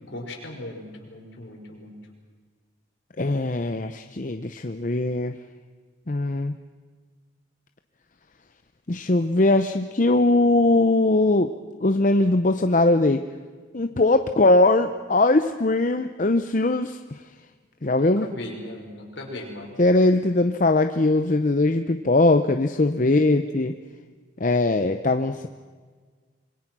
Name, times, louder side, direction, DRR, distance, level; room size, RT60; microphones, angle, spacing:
voice 1, 0.1-2.0 18.2-19.8, left 1 dB, 65° left, 0 dB, 5.3 m, -37 dB
voice 2, 3.2-5.4 6.1-6.5 8.9-11.5 11.8-13.2 13.7-17.2 17.8-18.3 19.8-23.7 24.4-25.5, left 2 dB, 40° left, 8 dB, 0.7 m, -20 dB
26.0 x 23.0 x 6.1 m, 1.5 s
head